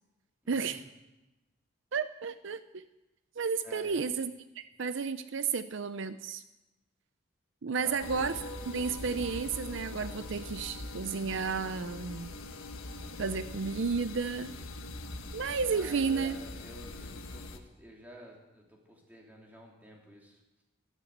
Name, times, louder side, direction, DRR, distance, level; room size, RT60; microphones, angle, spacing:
voice 1, 0.4-0.8 3.6-4.1 7.8-8.0 15.7-20.6, equal, 10° right, -2 dB, 3.2 m, -51 dB
voice 2, 1.9-2.8 3.4-6.4 7.6-8.4 8.7-12.3 13.2-14.5 15.3-16.4, right 5 dB, 65° right, 12 dB, 0.6 m, -32 dB
sound 1, 8.0-17.6, left 2 dB, 85° left, 1.5 m, -42 dB
13.0 x 13.0 x 8.0 m, 1.0 s
head